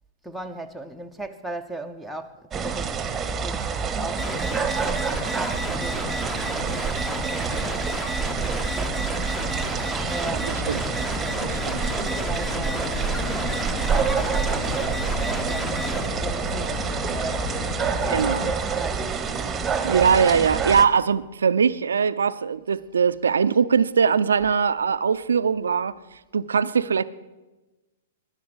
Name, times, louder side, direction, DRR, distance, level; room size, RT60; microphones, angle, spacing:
voice 1, 0.2-6.2 6.6-9.2 10.0-10.7 11.8-17.5 17.9-19.7, right 2 dB, ahead, 0.8 m, -38 dB
sound 1, 2.5-20.8, right 6 dB, 15° right, 1.1 m, -27 dB
sound 2, 4.2-16.1, left 2 dB, 15° left, 1.2 m, -33 dB
sound 3, 10.6-18.6, left 5 dB, 35° left, 1.2 m, -34 dB
voice 2, 11.4-11.8 18.1-18.5 19.8-26.0 26.3-27.0, right 6 dB, 80° right, 0.5 m, -21 dB
12.5 x 10.5 x 8.0 m
hypercardioid pair, 115°, 0 cm